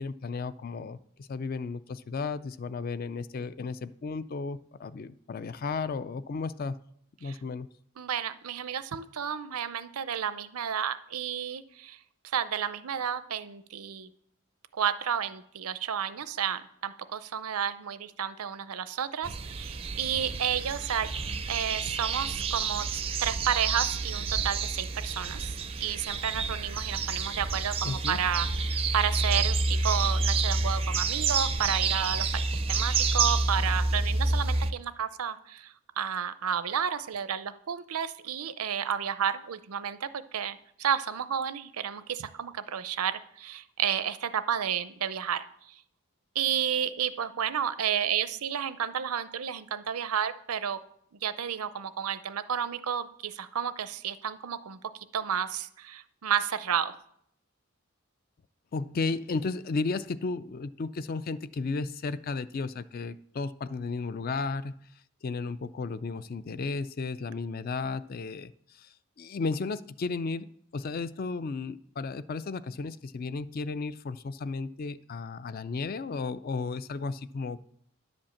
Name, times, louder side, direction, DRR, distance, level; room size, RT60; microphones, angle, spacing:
voice 1, 0.0-6.8 7.2-7.7 27.8-28.2 58.7-64.7 65.2-70.5 70.7-77.6, left 4 dB, 40° left, 16 dB, 0.3 m, -34 dB
voice 2, 8.0-12.0 12.3-14.1 14.7-21.1 21.5-25.5 25.8-32.4 32.7-45.4 46.4-50.8 51.2-56.9, right 8 dB, 85° right, 13 dB, 0.6 m, -31 dB
sound 1, 19.2-34.7, right 3 dB, 25° right, 0.4 m, -29 dB
10.5 x 5.2 x 7.1 m, 0.70 s
head